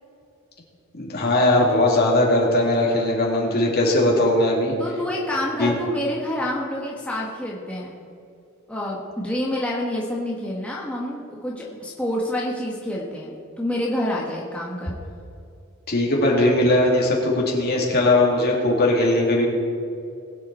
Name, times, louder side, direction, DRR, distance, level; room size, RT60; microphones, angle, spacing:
voice 1, 0.9-4.7 5.6-5.8 15.9-19.5, left 1 dB, 50° left, -2 dB, 2.7 m, -19 dB
voice 2, 4.8-8.0 8.7-14.9, left 1 dB, 5° left, -4 dB, 1.3 m, -28 dB
20.5 x 8.2 x 4.2 m, 2.6 s
head